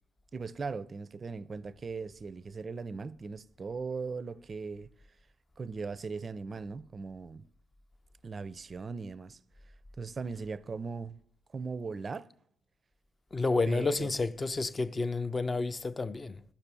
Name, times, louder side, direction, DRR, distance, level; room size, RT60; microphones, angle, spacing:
voice 1, 0.3-4.9 5.6-7.5 8.2-9.4 10.0-11.2 11.5-12.3 13.7-14.1, right 4 dB, 30° right, 0.5 m, -39 dB
voice 2, 13.3-16.4, left 3 dB, 25° left, 0.5 m, -30 dB
12.0 x 5.9 x 6.9 m
cardioid pair, 115°, 0 cm